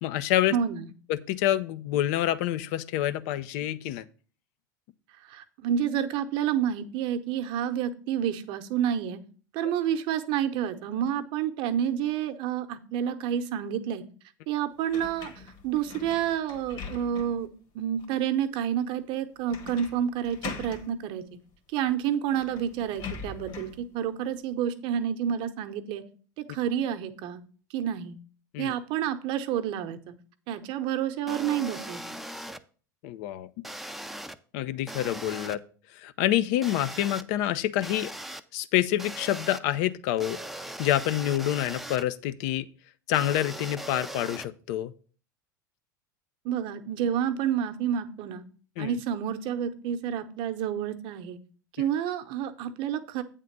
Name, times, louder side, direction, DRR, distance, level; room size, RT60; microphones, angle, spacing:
voice 1, 0.0-0.6 1.1-4.0 28.5-28.7 33.0-33.5 34.5-35.6 36.0-38.1 38.5-40.4 40.8-42.7 43.1-44.9 48.8-48.9, left 13 dB, 65° left, 0.6 m, -27 dB
voice 2, 0.5-0.9 5.2-9.2 9.5-14.0 14.5-15.3 15.6-17.5 17.7-21.2 21.7-26.0 26.4-27.4 27.7-28.2 28.6-30.1 30.5-32.0 46.4-48.4 48.8-51.4 51.8-53.2, right 9 dB, 60° right, 0.8 m, -29 dB
sound 1, 14.9-17.5 18.0-18.1 19.5-20.0 20.2-20.9 21.9-22.0 22.3-23.8, left 5 dB, 50° left, 1.7 m, -41 dB
sound 2, 31.3-32.6 33.6-34.4 34.9-35.6 36.6-37.2 37.8-38.4 39.0-39.6 40.2-42.0 43.1-44.5, right 1 dB, ahead, 0.5 m, -39 dB
8.3 x 3.7 x 6.6 m
hypercardioid pair, 85°, 10 cm